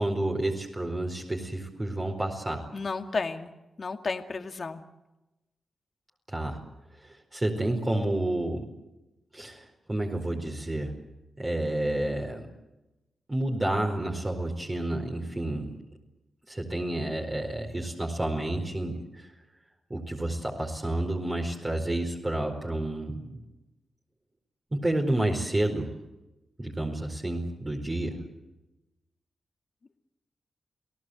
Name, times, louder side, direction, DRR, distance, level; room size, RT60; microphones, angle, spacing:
voice 1, 0.0-2.7 6.3-6.6 7.0-8.7 9.3-11.0 11.4-12.5 13.3-15.7 16.5-19.3 19.9-23.4 24.7-25.9 26.6-28.2, right 1 dB, 25° right, -1 dB, 4.7 m, -30 dB
voice 2, 2.7-3.5 3.8-4.8, left 4 dB, 50° left, 6 dB, 2.1 m, -32 dB
29.0 x 18.0 x 8.1 m, 0.99 s
cardioid pair, 60°, 0 cm